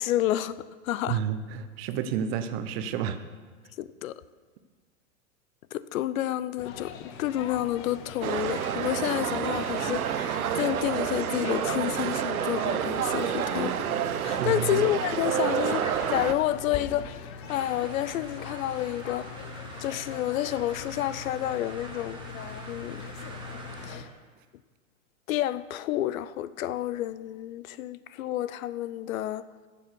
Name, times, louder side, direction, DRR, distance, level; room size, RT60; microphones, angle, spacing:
voice 1, 0.0-1.2 3.8-4.1 5.7-13.7 14.2-19.3 19.8-22.2 22.7-23.0 23.8-24.1 25.3-29.5, left 13 dB, 70° left, 0.6 m, -30 dB
voice 2, 1.1-3.2 14.4-14.9, right 8 dB, 45° right, 0.8 m, -30 dB
sound 1, 6.6-24.0, left 6 dB, 30° left, 0.7 m, -42 dB
sound 2, 8.2-16.3, right 9 dB, 85° right, 0.8 m, -29 dB
sound 3, 17.5-24.0, right 2 dB, 10° right, 1.5 m, -46 dB
13.5 x 7.2 x 4.5 m
hypercardioid pair, 125°, 42 cm